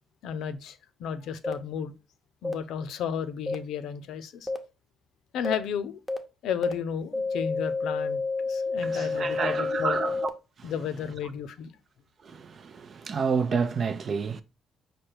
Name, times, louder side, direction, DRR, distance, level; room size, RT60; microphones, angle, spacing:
voice 1, 0.2-1.9 2.4-4.5 5.3-6.0 6.4-10.0 10.6-11.7, left 8 dB, 80° left, 0.5 m, -33 dB
sound 1, 1.4-1.5 2.4-2.5 3.5-3.6 4.5-4.6 5.4-5.5 6.1-6.2 6.6-6.7 7.1-10.3, left 3 dB, 5° left, 0.8 m, -29 dB
voice 2, 8.8-10.3 10.6-10.7 12.2-14.4, right 5 dB, 50° right, 0.5 m, -29 dB
4.9 x 2.2 x 4.3 m
cardioid pair, 90°, 0 cm